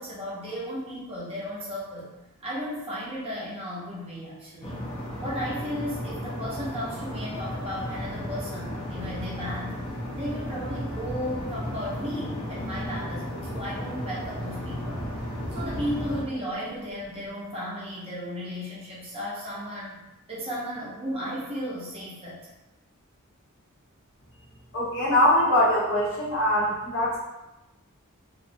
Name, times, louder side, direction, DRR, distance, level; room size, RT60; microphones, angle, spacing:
voice 1, 0.0-2.1 2.4-4.8 5.2-9.8 10.2-15.1 15.5-19.9 20.3-22.4, equal, 30° right, -7 dB, 0.7 m, -34 dB
sound 1, 4.6-16.2, equal, 25° left, 0.4 m, -34 dB
voice 2, 24.7-27.2, left 1 dB, 60° left, -7 dB, 0.9 m, -22 dB
2.4 x 2.0 x 2.6 m, 0.99 s
head